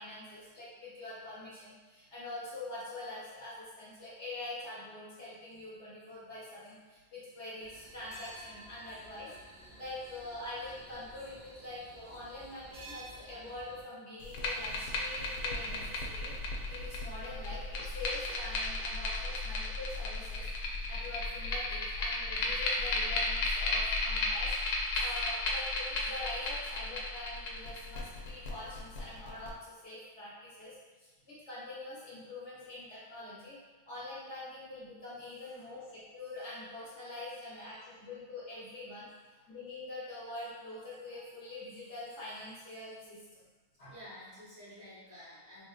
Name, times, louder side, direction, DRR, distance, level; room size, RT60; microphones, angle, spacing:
voice 1, 0.0-9.3 9.6-16.3 16.7-20.5 20.9-24.6 24.9-33.6 33.9-39.1 39.5-43.4 43.8-43.9, left 2 dB, 55° left, -9 dB, 1.2 m, -44 dB
sound 1, 7.6-13.8, right 1 dB, 75° right, 1.4 m, -52 dB
sound 2, 14.2-29.5, left 2 dB, 85° left, 1.0 m, -34 dB
voice 2, 43.9-45.6, left 1 dB, 50° right, -11 dB, 1.9 m, -51 dB
3.7 x 2.7 x 2.3 m, 1.2 s
omnidirectional pair, 1.5 m